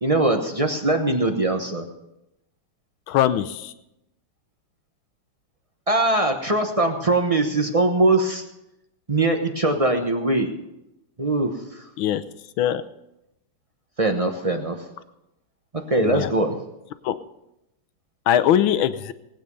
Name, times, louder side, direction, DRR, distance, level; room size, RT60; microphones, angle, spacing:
voice 1, 0.0-1.9 5.9-8.4 9.1-10.5 11.2-11.8 14.0-14.8 15.7-16.6, right 2 dB, 35° right, 4 dB, 0.5 m, -21 dB
voice 2, 3.1-3.7 12.0-12.2 12.6-12.8 16.0-16.3 17.0-17.2 18.3-19.1, left 10 dB, 70° left, 13 dB, 1.4 m, -21 dB
19.5 x 9.1 x 5.4 m, 0.88 s
omnidirectional pair, 2.4 m